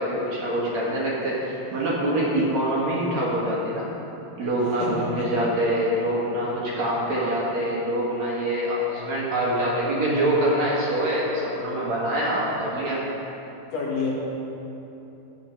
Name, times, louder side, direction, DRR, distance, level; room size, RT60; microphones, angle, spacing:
voice 1, 0.0-3.9 4.4-13.0, right 1 dB, 55° right, -5 dB, 2.3 m, -25 dB
voice 2, 4.8-5.3 12.9-13.0 13.7-14.1, left 4 dB, 55° left, -5 dB, 2.2 m, -29 dB
11.5 x 4.5 x 7.7 m, 2.9 s
omnidirectional pair, 4.4 m